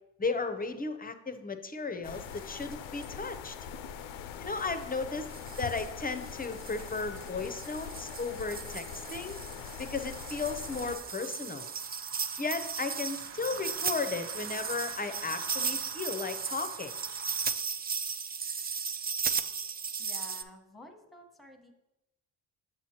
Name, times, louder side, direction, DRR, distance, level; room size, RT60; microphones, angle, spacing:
voice 1, 0.2-3.5 4.4-5.3 5.6-9.4 9.8-11.7 12.4-16.9, left 4 dB, 20° left, 9 dB, 0.6 m, -35 dB
sound 1, 2.0-11.0, left 8 dB, 85° left, 0.6 m, -43 dB
sound 2, 2.4-2.5 2.7-2.8 3.0-3.1 4.6-4.7 5.3-20.4, right 6 dB, 25° right, 0.3 m, -36 dB
sound 3, 2.8-17.5, right 7 dB, 70° right, 0.7 m, -50 dB
voice 2, 20.0-21.7, left 1 dB, ahead, 3 dB, 1.1 m, -51 dB
6.9 x 6.2 x 2.9 m, 0.95 s
cardioid pair, 60°, 45 cm